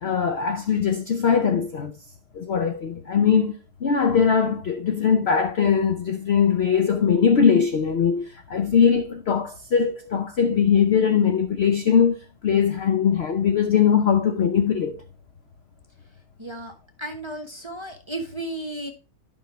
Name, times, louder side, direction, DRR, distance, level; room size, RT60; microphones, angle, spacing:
voice 1, 0.0-2.0 2.3-15.0, left 7 dB, 70° left, 0.6 m, -21 dB
voice 2, 16.4-16.7 17.0-18.9, right 1 dB, 20° right, 0.8 m, -33 dB
11.0 x 5.5 x 3.2 m
omnidirectional pair, 1.9 m